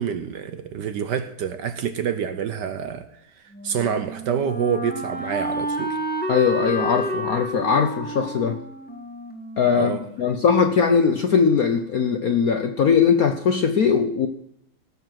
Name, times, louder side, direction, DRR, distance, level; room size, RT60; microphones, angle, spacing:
voice 1, 0.0-3.1 3.6-6.0 9.7-10.0, right 7 dB, 65° right, 10 dB, 1.2 m, -27 dB
Wind instrument woodwind instrument, 3.5-10.4, equal, 5° left, 0.7 m, -30 dB
voice 2, 6.3-8.6 9.6-14.3, left 6 dB, 65° left, 7 dB, 0.9 m, -20 dB
17.5 x 7.2 x 5.9 m, 0.78 s
omnidirectional pair, 2.4 m